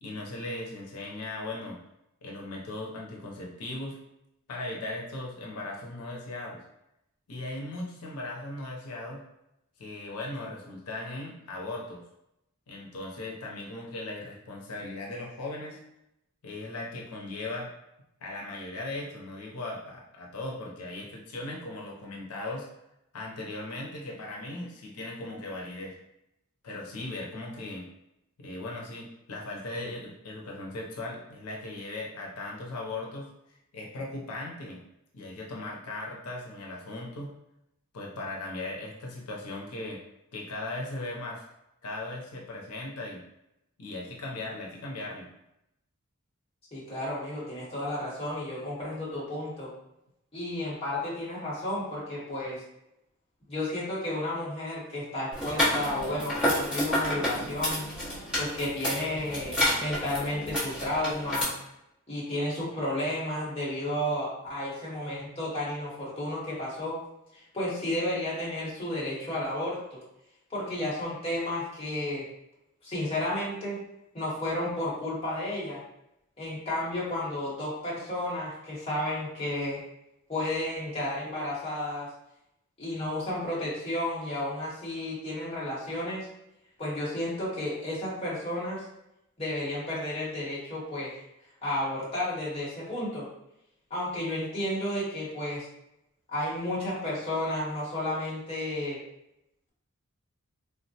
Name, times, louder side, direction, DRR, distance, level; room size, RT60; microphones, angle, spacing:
voice 1, 0.0-1.8 2.2-4.0 4.5-6.6 7.3-9.2 9.8-12.0 12.7-15.8 16.4-17.7 18.2-22.7 23.1-25.9 26.6-27.9 28.4-34.8 35.1-37.3 37.9-40.0 40.3-41.5 41.8-43.2 43.8-45.3, left 2 dB, 85° left, -2 dB, 0.6 m, -38 dB
voice 2, 46.7-49.7 50.3-52.6 53.5-57.9 58.4-61.5 62.1-67.0 67.3-70.0 70.5-72.3 72.8-73.8 74.1-75.8 76.4-79.8 80.3-82.1 82.8-86.3 86.8-88.9 89.4-91.2 91.6-93.3 93.9-95.7 96.3-99.0, left 1 dB, 25° left, -7 dB, 1.0 m, -32 dB
sound 1, 55.3-61.4, left 1 dB, 5° right, 0.9 m, -30 dB
3.4 x 2.1 x 2.7 m, 0.84 s
head